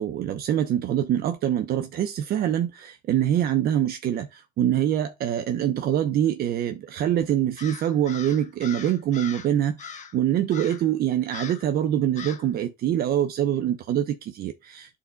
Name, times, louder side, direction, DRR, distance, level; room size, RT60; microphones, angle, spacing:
voice 1, 0.0-15.0, right 10 dB, 65° right, 0.8 m, -25 dB
Crow, 7.6-9.5 9.8-10.2 10.5-10.9 11.3-11.7 12.2-12.5, left 7 dB, 45° left, 1.2 m, -40 dB
12.0 x 4.2 x 2.2 m
cardioid pair, 110°, 17 cm